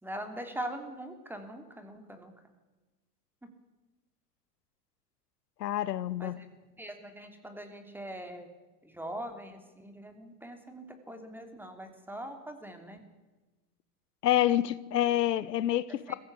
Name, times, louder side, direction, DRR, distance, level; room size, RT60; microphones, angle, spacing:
voice 1, 0.0-2.3 3.4-3.5 6.2-8.5 8.8-13.0 16.1-16.2, right 1 dB, 5° right, 2.9 m, -42 dB
voice 2, 5.6-6.3 14.2-16.1, left 12 dB, 90° left, 1.0 m, -27 dB
22.0 x 15.0 x 8.3 m
hypercardioid pair, 115°, 48 cm